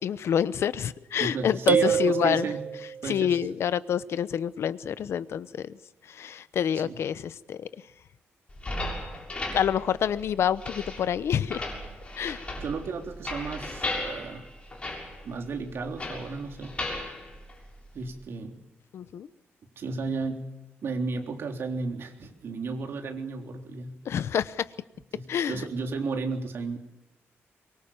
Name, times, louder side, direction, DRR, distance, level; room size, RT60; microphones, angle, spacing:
voice 1, 0.0-2.5 3.1-5.7 6.1-7.7 9.5-11.6 12.2-12.5 18.9-19.3 24.1-24.7 25.3-25.6, left 9 dB, 70° left, 15 dB, 0.9 m, -27 dB
voice 2, 1.2-2.6 3.0-3.4 6.8-7.0 12.5-14.5 15.2-16.8 17.9-18.6 19.8-20.5 20.8-24.0 25.1-26.8, right 4 dB, 60° right, 3 dB, 3.6 m, -33 dB
sound 1, 1.7-3.2, right 6 dB, 45° right, 1.0 m, -26 dB
sound 2, 8.5-18.2, left 2 dB, 25° left, 7.0 m, -37 dB
24.5 x 23.5 x 7.3 m, 0.89 s
wide cardioid pair, 150°, 5 cm